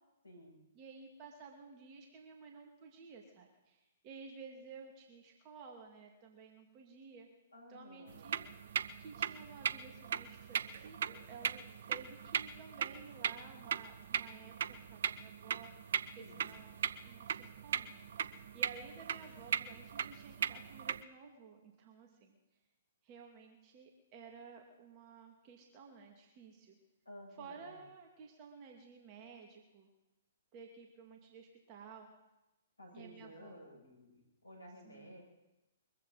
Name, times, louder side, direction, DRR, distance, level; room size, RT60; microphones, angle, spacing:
voice 1, 0.2-0.6 7.5-8.3 16.2-16.6 19.1-19.5 27.0-27.9 32.8-35.2, equal, 85° left, -3 dB, 7.5 m, -55 dB
voice 2, 0.8-7.3 7.7-8.5 9.0-11.6 11.9-15.7 16.1-16.7 17.0-18.1 18.5-22.4 23.0-26.8 27.4-29.9 30.5-32.1 32.9-33.6 34.8-35.1, right 5 dB, 35° right, 1 dB, 2.5 m, -54 dB
sound 1, 8.1-21.0, right 8 dB, 60° right, 0.7 m, -39 dB
22.5 x 14.5 x 4.2 m, 1.0 s
figure-of-eight pair, 120°, 0 cm